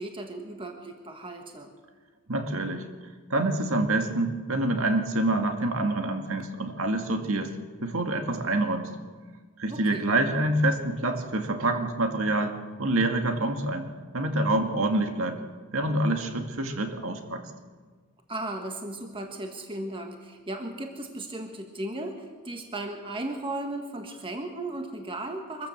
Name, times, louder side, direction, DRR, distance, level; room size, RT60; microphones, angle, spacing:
voice 1, 0.0-1.7 9.7-10.1 18.3-25.7, right 2 dB, 25° right, 3 dB, 1.6 m, -36 dB
voice 2, 2.3-2.9 3.3-7.5 7.8-8.9 9.6-13.9 14.1-15.4 15.7-17.4, right 2 dB, 65° right, 5 dB, 2.2 m, -26 dB
24.0 x 14.5 x 7.4 m, 1.5 s
head